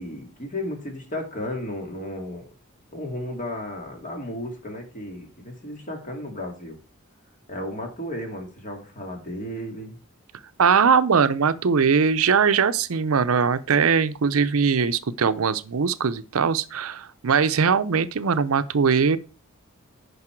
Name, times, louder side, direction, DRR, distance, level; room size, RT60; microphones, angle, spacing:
voice 1, 0.0-2.5 2.9-6.8 7.5-10.0, left 1 dB, 35° left, 2.3 m, -34 dB
voice 2, 10.6-19.2, right 6 dB, 75° right, 0.6 m, -21 dB
9.7 x 5.5 x 4.5 m
head